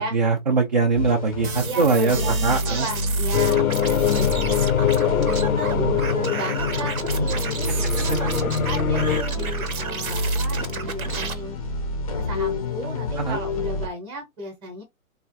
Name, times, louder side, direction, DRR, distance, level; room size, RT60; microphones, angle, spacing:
voice 1, 0.0-2.9 7.7-7.8 13.2-13.4, right 4 dB, 35° right, 0.4 m, -22 dB
sound 1, 0.9-13.9, left 1 dB, 25° left, 0.5 m, -28 dB
sound 2, 1.4-11.3, right 5 dB, 75° right, 0.8 m, -32 dB
voice 2, 1.6-3.6 3.9-5.3 5.6-11.6 12.2-14.8, right 1 dB, 10° right, 0.7 m, -35 dB
sound 3, 3.3-9.2, left 9 dB, 75° left, 0.6 m, -24 dB
3.4 x 2.3 x 2.6 m
figure-of-eight pair, 135°, 42 cm